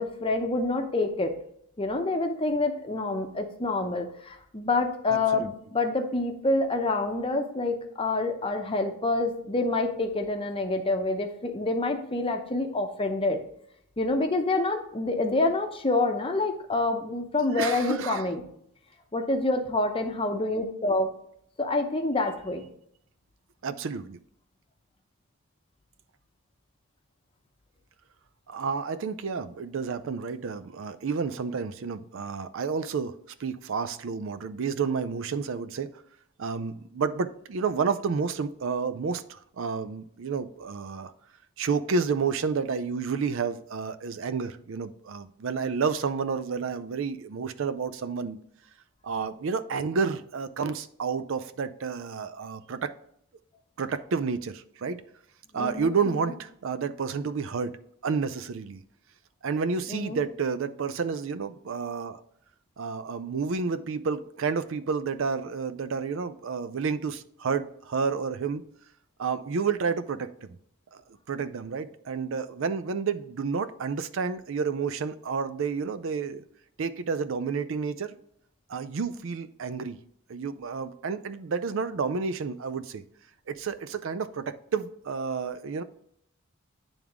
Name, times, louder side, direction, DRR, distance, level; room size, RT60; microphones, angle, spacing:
voice 1, 0.0-1.3 1.8-13.4 14.0-18.4 19.1-21.1 21.6-22.7 55.5-56.3 59.9-60.2, left 2 dB, 25° left, 0.7 m, -27 dB
voice 2, 5.1-5.5 17.6-18.2 23.6-24.2 28.5-35.9 36.4-41.1 41.6-48.4 49.0-52.9 53.8-55.0 55.5-57.8 58.0-58.8 59.4-62.2 62.8-68.6 69.2-70.6 70.9-71.0 71.3-76.4 76.8-78.2 78.7-80.0 80.3-83.0 83.5-85.8, right 5 dB, 65° right, 0.4 m, -30 dB
8.9 x 3.6 x 3.5 m
head